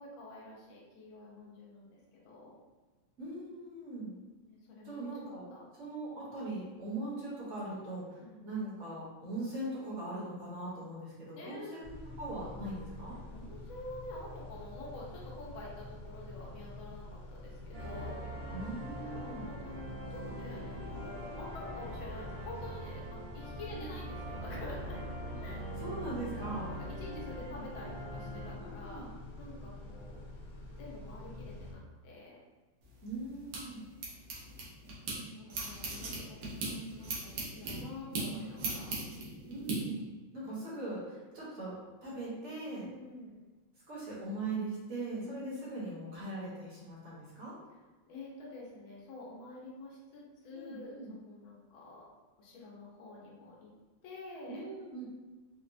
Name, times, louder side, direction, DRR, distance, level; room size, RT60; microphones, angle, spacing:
voice 1, 0.0-2.6 4.5-5.6 8.2-8.4 11.4-11.8 13.3-18.3 19.1-25.0 25.4-25.7 26.3-29.1 29.4-30.2 30.8-32.4 34.8-39.0 42.8-43.4 45.2-45.7 48.1-52.1 52.4-53.7 54.0-54.6, left 2 dB, 90° left, -4 dB, 1.6 m, -48 dB
voice 2, 3.2-4.1 4.8-5.5 5.7-13.2 18.5-19.5 23.7-23.8 25.8-26.7 27.0-27.6 28.6-29.1 33.0-33.8 39.5-40.0 40.3-41.8 42.0-42.9 43.9-47.6 50.5-51.1 54.5-55.0, right 2 dB, 45° right, -7 dB, 1.1 m, -40 dB
Car / Idling / Accelerating revving vroom, 11.8-31.7, left 2 dB, 55° left, 0.9 m, -47 dB
sound 1, 17.7-28.5, equal, 70° right, 0.5 m, -43 dB
sound 2, 32.8-35.2 35.5-39.8, right 3 dB, 90° right, 1.6 m, -39 dB
4.5 x 2.0 x 2.5 m, 1.2 s
omnidirectional pair, 2.2 m